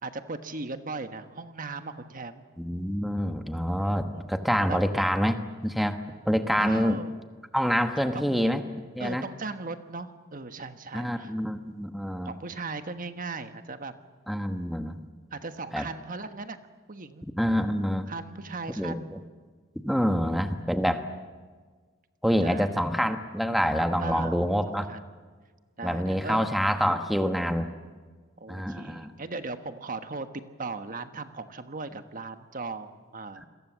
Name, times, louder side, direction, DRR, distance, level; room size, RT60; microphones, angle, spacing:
voice 1, 0.0-2.4 4.1-4.2 4.7-4.8 6.6-7.2 7.9-8.4 9.0-11.3 12.2-13.9 15.3-16.6 16.9-17.2 18.1-19.1 22.4-22.7 24.0-24.4 24.7-25.0 25.8-26.5 28.4-30.3 30.6-33.5, right 3 dB, 40° right, 8 dB, 1.4 m, -37 dB
voice 2, 2.6-6.0 6.2-7.0 7.5-8.6 8.9-9.2 10.9-12.3 14.3-15.0 15.7-15.9 17.4-18.1 18.8-19.2 19.8-21.0 22.2-24.9 25.8-27.7 28.5-29.1, equal, ahead, 6 dB, 1.1 m, -26 dB
28.5 x 22.5 x 7.4 m, 1.5 s
head